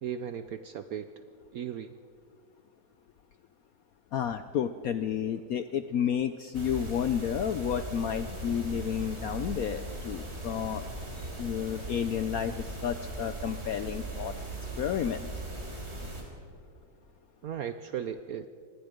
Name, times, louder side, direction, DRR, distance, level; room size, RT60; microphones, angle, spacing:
voice 1, 0.0-1.2 1.5-2.0 17.4-18.5, right 8 dB, 70° right, 11 dB, 0.8 m, -36 dB
voice 2, 4.1-10.9 11.4-14.3 14.8-15.3, left 9 dB, 70° left, 11 dB, 0.8 m, -31 dB
sound 1, 6.5-16.2, right 2 dB, 30° right, 3.7 m, -39 dB
25.5 x 20.0 x 5.1 m, 2.3 s
omnidirectional pair, 2.1 m